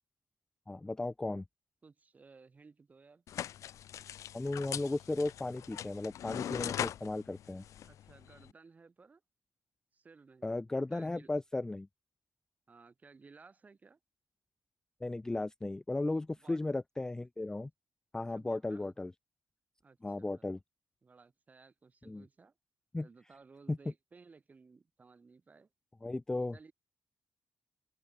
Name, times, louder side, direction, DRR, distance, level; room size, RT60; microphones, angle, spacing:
voice 1, 0.7-1.4 4.3-7.6 10.4-11.9 15.0-17.7 18.1-19.1 20.0-20.6 22.1-22.2 22.9-23.1 23.7-23.8 26.0-26.6, left 2 dB, 10° left, 0.3 m, -35 dB
voice 2, 1.8-3.2 7.8-9.2 9.9-10.6 10.9-11.3 12.7-14.0 16.4-16.6 18.3-18.9 19.8-20.4 21.0-22.5 23.0-25.7 26.5-26.7, right 4 dB, 25° right, 4.2 m, -58 dB
sound 1, 3.3-8.5, left 11 dB, 65° left, 0.5 m, -41 dB
cardioid pair, 135°, 6 cm